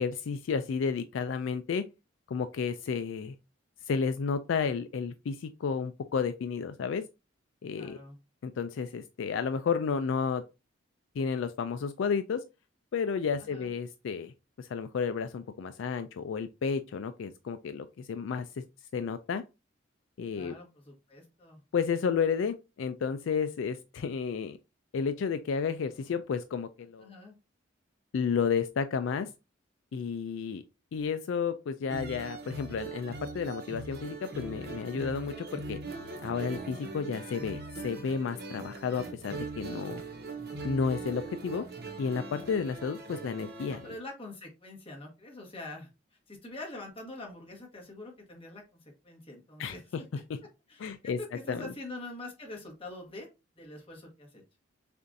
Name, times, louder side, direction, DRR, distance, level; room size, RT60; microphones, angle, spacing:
voice 1, 0.0-1.8 2.3-3.3 3.9-7.0 7.6-8.0 8.4-10.4 11.2-12.4 12.9-14.3 14.6-18.6 18.9-19.4 20.2-20.5 21.7-24.6 24.9-27.1 28.1-29.3 29.9-30.6 30.9-35.8 36.2-40.0 40.6-41.6 42.0-43.8 49.6-49.7 50.8-51.2 51.5-51.7, left 6 dB, 70° left, 0.3 m, -32 dB
voice 2, 7.7-8.2 13.4-13.7 20.3-21.6 27.0-27.3 43.7-49.8 50.7-53.3 53.5-54.4, left 2 dB, 30° left, 1.5 m, -45 dB
sound 1, 31.9-43.9, right 3 dB, 55° right, 1.0 m, -41 dB
6.8 x 2.5 x 2.6 m
head